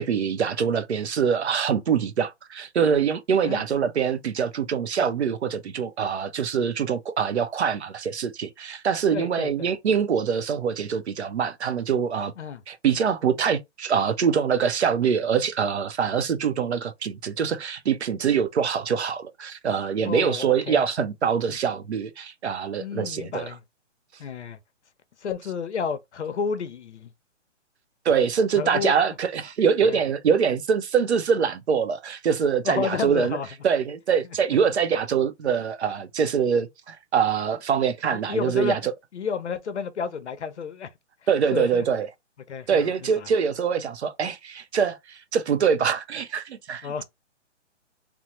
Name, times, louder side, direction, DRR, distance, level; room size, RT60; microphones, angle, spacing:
voice 1, 0.0-12.3 12.7-23.5 28.0-33.4 33.6-38.9 41.3-42.1 42.7-47.0, right 7 dB, 65° right, 0.6 m, -24 dB
voice 2, 9.1-9.7 12.4-12.6 20.0-20.8 21.5-21.6 22.8-23.6 24.2-24.6 25.2-27.1 28.6-28.9 29.8-30.0 32.6-33.5 38.1-38.8 39.1-40.9 41.5-41.9 42.5-43.3 46.8-47.0, left 6 dB, 65° left, 0.7 m, -31 dB
3.0 x 2.0 x 2.9 m
hypercardioid pair, 180°, 37 cm